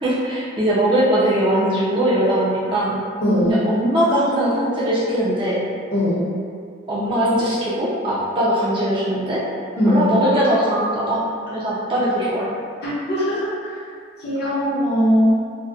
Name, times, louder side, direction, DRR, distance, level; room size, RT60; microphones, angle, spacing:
voice 1, 0.0-3.0 3.4-5.6 6.9-9.4 9.8-12.5, right 1 dB, 25° right, -9 dB, 0.4 m, -20 dB
voice 2, 3.2-3.6 5.9-6.3 9.8-10.1 12.8-13.8 14.2-15.4, equal, 55° left, -8 dB, 0.7 m, -20 dB
2.7 x 2.1 x 2.4 m, 2.2 s
head